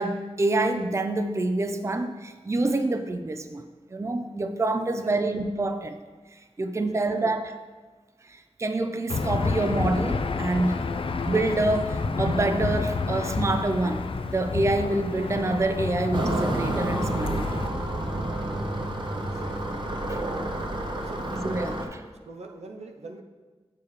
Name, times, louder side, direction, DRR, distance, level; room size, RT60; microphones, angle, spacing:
voice 1, 0.0-3.6 3.9-6.0 6.6-7.6 8.3-10.9 11.2-17.6 20.1-20.2 21.3-22.0, right 2 dB, 25° right, 8 dB, 0.4 m, -27 dB
Aircraft / Engine, 9.1-17.7, left 4 dB, 55° left, 0.4 m, -29 dB
sound 1, 16.1-21.9, right 1 dB, 45° right, 0.9 m, -29 dB
voice 2, 19.2-19.7 21.0-21.3 22.3-23.2, right 3 dB, 80° right, 3 dB, 0.6 m, -44 dB
7.0 x 6.7 x 3.2 m, 1.4 s
wide cardioid pair, 70°, 11 cm